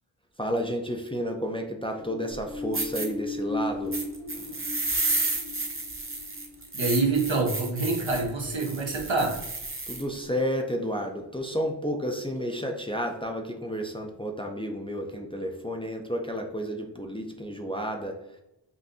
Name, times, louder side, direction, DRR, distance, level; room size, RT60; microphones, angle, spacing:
voice 1, 0.4-4.0 4.3-4.6 9.9-18.4, equal, 10° left, 2 dB, 0.5 m, -31 dB
sound 1, 1.9-8.2 8.5-8.6, left 2 dB, 75° left, 1.0 m, -37 dB
sound 2, 2.3-2.4 2.7-3.1 3.9-10.0, right 2 dB, 30° right, 0.8 m, -31 dB
voice 2, 6.7-9.4, right 3 dB, 75° right, 0 dB, 1.1 m, -26 dB
5.4 x 2.6 x 2.6 m, 0.86 s
wide cardioid pair, 60°, 45 cm